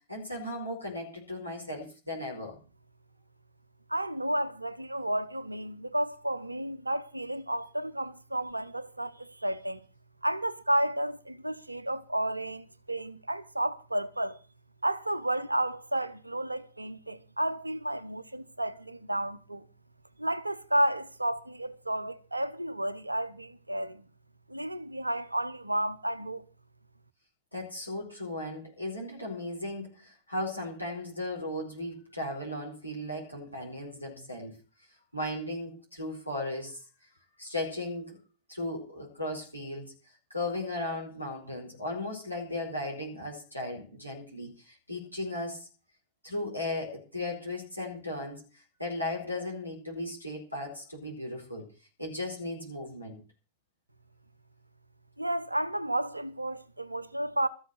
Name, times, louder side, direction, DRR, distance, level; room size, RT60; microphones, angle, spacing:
voice 1, 0.1-2.6 27.5-34.5 35.1-36.8 37.4-38.2 38.5-39.9 40.3-45.7 46.2-51.7 52.0-53.2, left 1 dB, 90° left, 5.0 m, -36 dB
voice 2, 3.9-9.8 10.2-14.4 14.8-19.7 20.2-24.1 24.5-26.5 55.2-57.5, right 1 dB, 85° right, 1.0 m, -32 dB
14.0 x 7.8 x 8.0 m
figure-of-eight pair, 90°, 0 cm